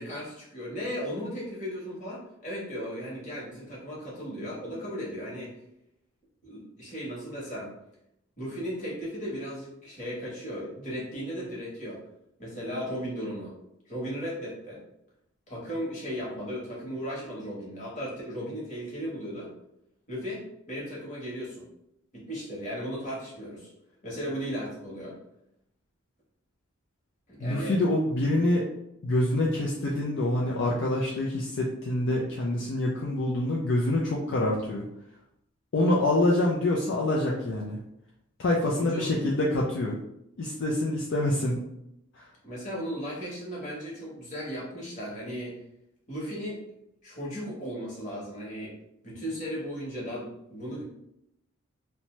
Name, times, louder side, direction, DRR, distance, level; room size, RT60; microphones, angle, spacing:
voice 1, 0.0-5.5 6.4-7.7 8.4-12.0 12.4-13.5 13.9-14.8 15.5-19.5 20.1-21.6 22.1-23.7 24.0-25.2 27.3-27.8 38.7-39.2 42.4-45.6 46.1-46.6 47.0-48.7 49.0-50.8, equal, 40° left, -5 dB, 1.1 m, -36 dB
voice 2, 27.4-28.6 29.0-34.9 35.7-37.8 38.4-40.0 40.4-41.6, left 1 dB, 60° left, -3 dB, 0.4 m, -26 dB
2.7 x 2.2 x 3.0 m, 0.79 s
head